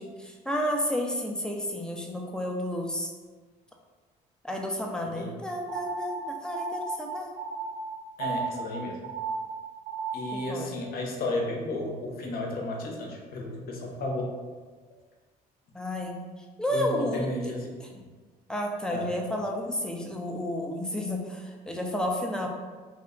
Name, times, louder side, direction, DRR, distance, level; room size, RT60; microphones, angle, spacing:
voice 1, 0.0-3.1 4.4-7.3 10.3-10.7 15.7-17.3 18.5-22.5, left 1 dB, 5° left, 1 dB, 0.5 m, -31 dB
voice 2, 5.0-5.4 8.2-9.0 10.1-14.4 16.7-18.1 18.9-19.1, left 2 dB, 65° left, 0 dB, 0.8 m, -33 dB
sound 1, 5.7-10.6, right 5 dB, 85° right, 0.4 m, -35 dB
3.4 x 2.1 x 3.7 m, 1.4 s
cardioid pair, 110°, 17 cm